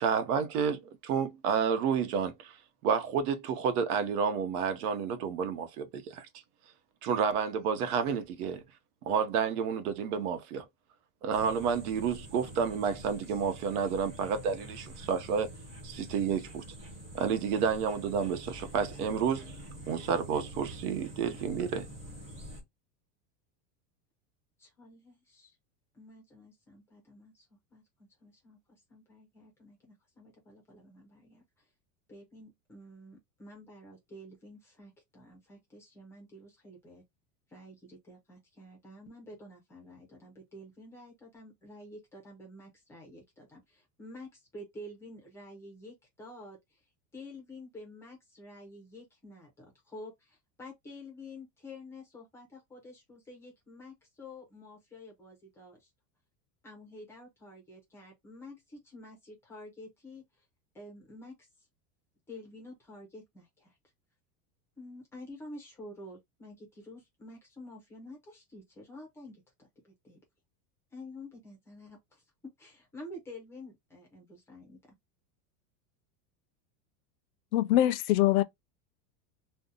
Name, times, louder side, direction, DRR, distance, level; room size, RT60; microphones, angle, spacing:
voice 1, 0.0-2.6 2.8-6.3 7.0-8.6 9.0-10.7 11.2-15.5 15.8-16.7 17.1-19.6 19.9-21.9, right 6 dB, 90° right, 0.9 m, -30 dB
sound 1, 11.3-22.6, right 1 dB, 15° right, 0.8 m, -46 dB
voice 2, 24.6-25.6 25.9-28.6 28.9-31.7 32.1-37.0 37.5-46.8 47.1-55.9 56.6-60.4 60.7-61.7 62.3-63.8 64.8-70.2 70.9-75.0, left 1 dB, 5° left, 0.4 m, -49 dB
voice 3, 77.5-78.4, left 14 dB, 70° left, 0.5 m, -23 dB
2.7 x 2.1 x 3.8 m
supercardioid pair, 180°, 44 cm